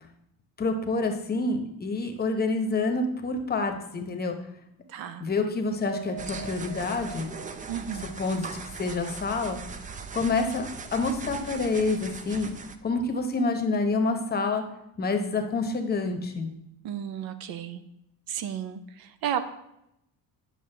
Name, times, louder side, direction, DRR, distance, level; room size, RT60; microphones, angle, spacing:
voice 1, 0.6-4.3 5.2-7.3 8.2-9.6 10.1-12.5 12.8-14.6 15.0-16.5, left 3 dB, 25° left, 5 dB, 0.9 m, -27 dB
voice 2, 4.9-5.3 7.7-8.2 16.8-17.8 18.3-19.4, right 9 dB, 80° right, 11 dB, 0.7 m, -33 dB
Piano, 5.8-10.3 10.7-10.8 11.2-11.4, right 3 dB, 60° right, 1.7 m, -44 dB
sound 1, 6.2-12.8, right 5 dB, 25° right, 0.4 m, -40 dB
9.9 x 6.4 x 3.3 m, 0.81 s
cardioid pair, 145°, 36 cm